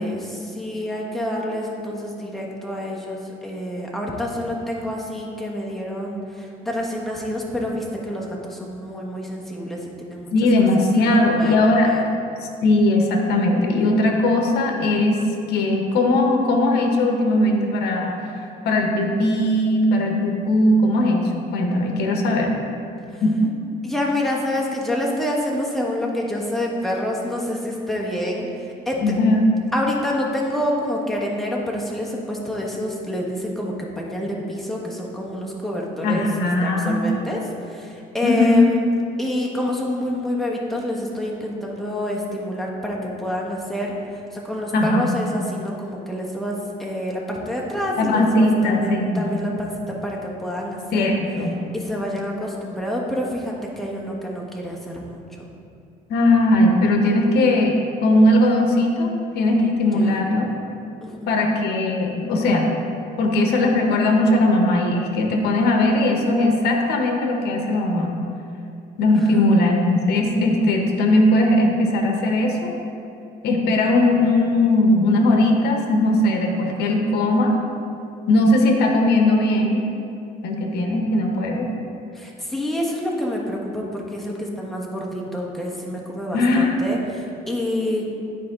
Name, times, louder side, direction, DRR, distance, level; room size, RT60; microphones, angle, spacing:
voice 1, 0.0-10.3 11.0-11.6 11.8-12.0 23.1-23.2 23.8-29.0 29.7-36.3 36.6-38.8 39.2-51.1 51.7-55.5 59.9-60.2 61.0-61.5 69.1-69.6 82.1-88.0, left 1 dB, ahead, -3 dB, 1.3 m, -28 dB
voice 2, 10.3-11.9 12.4-15.2 15.5-22.6 23.2-23.5 29.0-29.4 36.0-37.0 38.2-38.7 44.7-45.2 48.0-49.3 50.9-51.6 56.1-60.5 61.3-62.7 63.2-68.1 69.0-72.7 73.4-77.5 78.3-79.8 80.4-81.7 86.3-86.8, left 1 dB, 75° left, 2 dB, 1.0 m, -19 dB
10.5 x 4.6 x 3.6 m, 2.6 s
cardioid pair, 110°, 17 cm